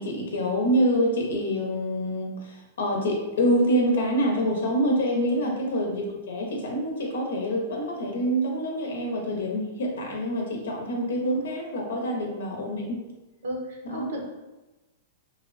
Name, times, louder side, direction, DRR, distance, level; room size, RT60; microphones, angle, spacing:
voice 1, 0.0-13.0 13.8-14.1, equal, 90° left, 0 dB, 0.7 m, -26 dB
voice 2, 13.4-14.3, equal, 80° right, 0 dB, 0.7 m, -34 dB
2.9 x 2.0 x 2.6 m, 1.1 s
hypercardioid pair, 155°, 0 cm